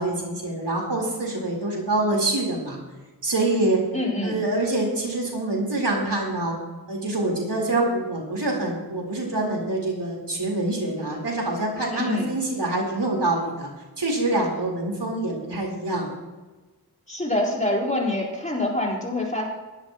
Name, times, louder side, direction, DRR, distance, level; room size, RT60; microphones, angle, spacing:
voice 1, 0.0-2.8 3.2-3.8 4.2-6.5 6.9-13.7 14.0-16.1, right 2 dB, 80° right, -1 dB, 4.0 m, -25 dB
voice 2, 3.9-4.4 11.9-12.3 17.1-19.5, left 1 dB, 20° left, -3 dB, 4.3 m, -25 dB
22.5 x 12.0 x 3.0 m, 1.2 s
wide cardioid pair, 55°, 41 cm